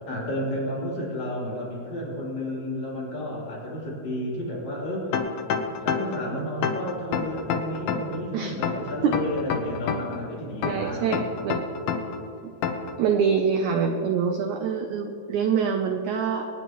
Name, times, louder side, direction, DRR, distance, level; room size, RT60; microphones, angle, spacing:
voice 1, 0.0-5.2 5.8-11.2, equal, 50° left, -6 dB, 4.5 m, -32 dB
sound 1, 5.1-6.2 6.6-8.2 8.6-10.2 10.6-12.2 12.6-12.9, left 7 dB, 80° left, 1.5 m, -27 dB
voice 2, 10.6-11.6 12.4-12.5 13.0-16.5, right 6 dB, 90° right, 5 dB, 1.7 m, -25 dB
25.5 x 9.9 x 3.1 m, 2.4 s
omnidirectional pair, 4.3 m